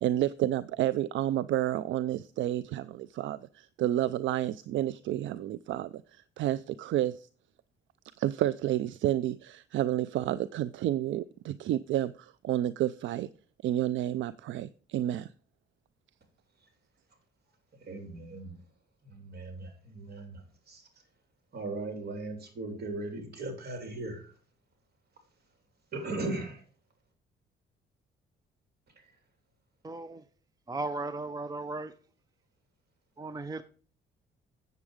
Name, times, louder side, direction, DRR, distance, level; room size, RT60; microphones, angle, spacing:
voice 1, 0.0-7.3 8.2-13.3 13.6-15.3, right 13 dB, 75° right, 0.4 m, -30 dB
voice 2, 17.8-18.5 19.0-20.9 21.5-24.3 25.9-26.6, right 2 dB, 55° right, 3.2 m, -38 dB
voice 3, 29.8-30.2 30.7-31.9 33.2-33.6, right 2 dB, 20° right, 0.6 m, -36 dB
8.1 x 7.3 x 4.9 m
cardioid pair, 90°, 20 cm